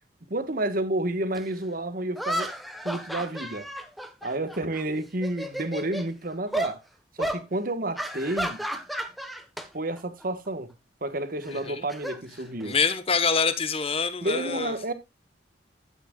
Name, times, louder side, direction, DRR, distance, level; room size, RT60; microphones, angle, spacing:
voice 1, 0.3-2.5 2.8-3.7 4.2-6.8 7.2-8.6 9.7-10.7 11.0-12.8 14.2-14.9, right 1 dB, 50° right, 1.3 m, -30 dB
sound 1, 1.3-1.4 2.2-4.8 5.1-6.1 6.5-6.8 7.2-7.4 8.0-9.7 10.0-10.2 11.4-12.9, equal, ahead, 1.1 m, -33 dB
voice 2, 12.6-14.9, left 5 dB, 30° left, 1.2 m, -26 dB
12.5 x 8.7 x 2.3 m
head